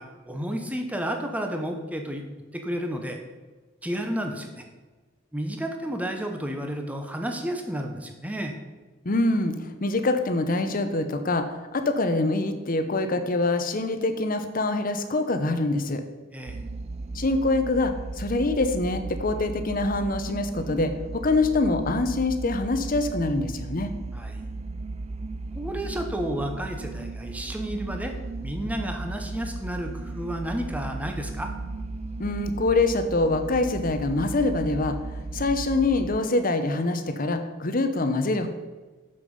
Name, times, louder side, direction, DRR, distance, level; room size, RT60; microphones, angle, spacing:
voice 1, 0.0-2.2 2.5-3.2 3.8-4.7 5.3-8.6 16.3-16.6 24.1-24.4 25.5-28.1 28.4-31.5, equal, 5° right, 4 dB, 0.9 m, -31 dB
voice 2, 9.0-16.0 17.1-23.9 32.2-35.0 35.3-38.5, left 2 dB, 45° left, 8 dB, 0.8 m, -25 dB
sound 1, 16.5-36.2, right 3 dB, 30° right, 0.3 m, -35 dB
7.0 x 6.7 x 5.4 m, 1.3 s
head